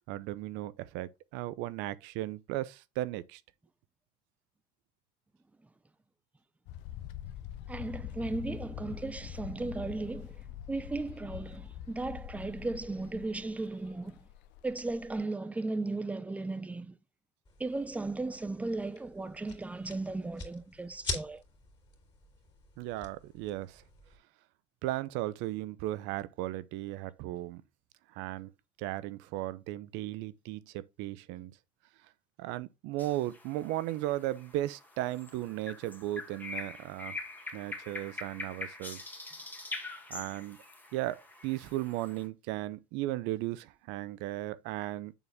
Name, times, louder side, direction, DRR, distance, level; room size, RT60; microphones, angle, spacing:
voice 1, 0.0-3.4 22.8-23.8 24.8-27.6 28.1-28.5 28.8-31.5 32.4-37.2 37.5-39.0 40.1-40.6 40.9-45.1, right 15 dB, 70° right, 0.7 m, -36 dB
sound 1, 6.7-15.2, left 11 dB, 65° left, 0.9 m, -44 dB
voice 2, 7.7-10.4 10.7-14.2 14.6-16.9 17.6-21.4, right 2 dB, 5° right, 0.5 m, -36 dB
sound 2, 17.4-24.2, left 3 dB, 25° left, 3.0 m, -45 dB
sound 3, 33.0-42.3, left 2 dB, 10° left, 1.7 m, -44 dB
7.1 x 4.1 x 3.4 m
supercardioid pair, 110°, 19 cm